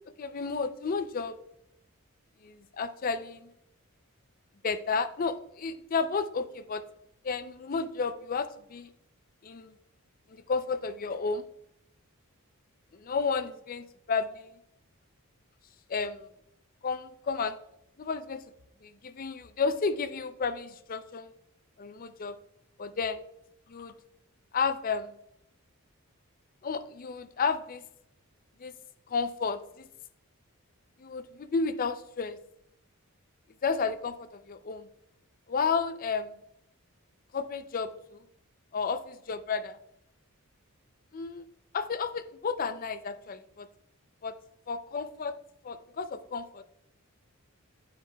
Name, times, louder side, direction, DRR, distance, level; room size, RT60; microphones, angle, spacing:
voice 1, 0.2-1.4 2.4-3.5 4.6-6.8 7.2-8.9 9.4-9.7 10.3-11.4 12.9-14.6 15.9-16.3 16.8-17.6 18.0-18.4 18.8-21.3 21.8-22.4 22.8-23.2 23.7-24.0 24.5-25.2 26.6-27.8 28.6-28.7 29.1-29.9 31.0-32.4 33.6-34.9 35.5-36.4 37.3-38.2 38.7-39.8 41.1-41.4 41.7-43.7 44.2-44.3 44.7-45.3 45.6-46.6, left 5 dB, 40° left, 11 dB, 0.4 m, -32 dB
9.3 x 9.2 x 2.2 m, 0.79 s
head